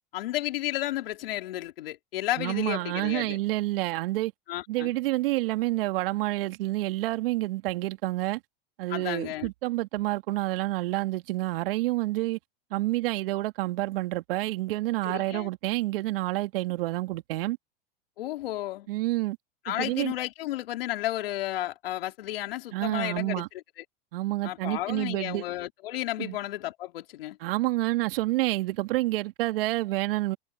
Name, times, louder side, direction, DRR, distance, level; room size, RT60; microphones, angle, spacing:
voice 1, 0.1-3.4 4.5-4.9 8.9-9.5 15.0-15.5 18.2-18.9 19.6-23.4 23.8-23.9 24.4-27.4, left 15 dB, 75° left, 3.8 m, -32 dB
voice 2, 2.4-4.3 4.7-8.4 8.8-12.4 12.7-17.6 18.9-19.4 19.7-20.1 22.7-23.5 24.1-25.4 26.2-26.4 27.4-30.4, right 18 dB, 70° right, 2.3 m, -28 dB
hypercardioid pair, 100°, 30 cm